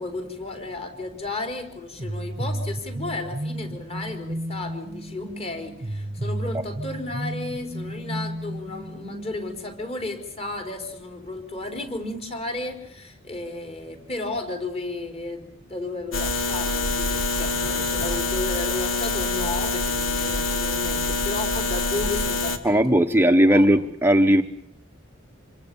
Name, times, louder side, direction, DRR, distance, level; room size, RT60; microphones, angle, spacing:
voice 1, 0.0-23.8, left 2 dB, 30° left, 5 dB, 4.6 m, -33 dB
sound 1, 2.0-9.6, right 1 dB, 30° right, 1.1 m, -33 dB
sound 2, 16.1-22.6, left 3 dB, 90° left, 2.7 m, -25 dB
voice 2, 22.6-24.4, right 1 dB, 10° right, 6 dB, 1.0 m, -17 dB
27.0 x 24.0 x 7.1 m, 0.68 s
head